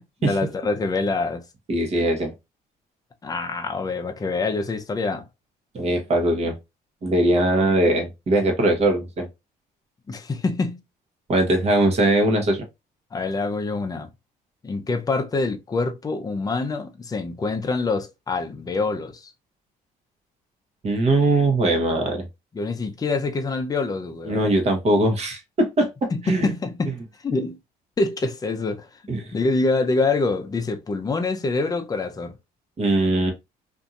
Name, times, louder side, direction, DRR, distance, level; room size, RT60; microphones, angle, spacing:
voice 1, 0.0-1.4 3.2-5.3 10.1-10.8 13.1-14.1 14.6-19.3 22.5-24.4 26.1-26.9 27.2-27.6 28.0-32.4, left 3 dB, 20° left, 0.5 m, -25 dB
voice 2, 1.7-2.3 5.7-6.5 7.0-9.3 11.3-12.6 20.8-22.3 24.2-26.5 29.1-29.3 32.8-33.3, right 1 dB, 40° right, 1.0 m, -21 dB
2.8 x 2.6 x 2.4 m
cardioid pair, 110°, 17 cm